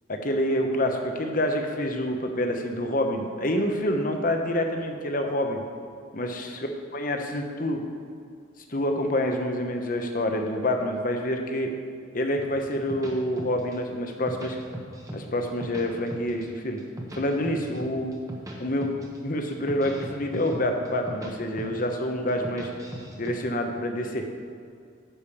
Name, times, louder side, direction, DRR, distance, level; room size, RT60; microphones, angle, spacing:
voice 1, 0.1-5.6 6.1-7.8 8.7-11.7 12.1-14.6 15.1-16.8 17.2-18.1 18.6-18.9 19.2-22.7 23.1-24.2, left 1 dB, 45° left, 4 dB, 0.9 m, -27 dB
sound 1, 12.4-13.8 14.1-15.2 15.5-16.4 16.8-18.6 18.8-19.2 19.5-21.3 21.6-22.0 22.3-23.4, right 1 dB, 15° right, 1.1 m, -38 dB
10.0 x 5.1 x 7.1 m, 2.3 s
head